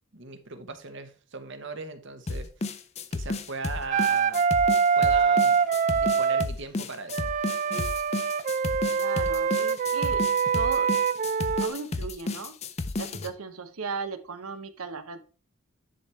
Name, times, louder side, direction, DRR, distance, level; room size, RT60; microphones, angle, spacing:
voice 1, 0.1-2.7 3.1-4.4 5.0-5.6 5.9-7.3, right 4 dB, 55° right, 1.1 m, -39 dB
sound 1, 2.3-13.3, left 2 dB, 30° left, 0.5 m, -32 dB
Wind instrument woodwind instrument, 3.9-6.5 7.1-11.7, right 6 dB, 35° right, 0.3 m, -24 dB
voice 2, 8.9-10.3 10.5-10.9 11.6-12.6 12.9-15.3, right 4 dB, 80° right, 0.9 m, -36 dB
10.0 x 3.5 x 4.3 m
head